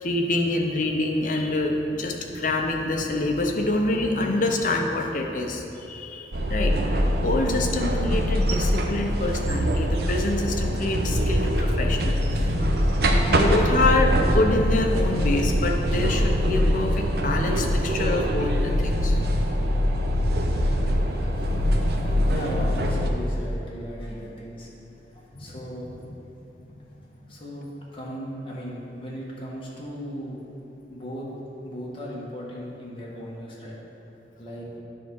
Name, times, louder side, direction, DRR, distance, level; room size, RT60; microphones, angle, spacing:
voice 1, 0.0-12.5 13.3-19.2 21.4-22.3 25.3-25.5, left 2 dB, 45° left, 2 dB, 0.7 m, -26 dB
sound 1, 6.3-23.1, equal, 60° right, 0.7 m, -23 dB
voice 2, 22.0-24.7 25.1-26.3 27.3-30.4 30.9-31.3 31.6-33.8 34.4-34.7, equal, 30° left, -5 dB, 1.4 m, -37 dB
9.7 x 3.6 x 6.1 m, 2.9 s
head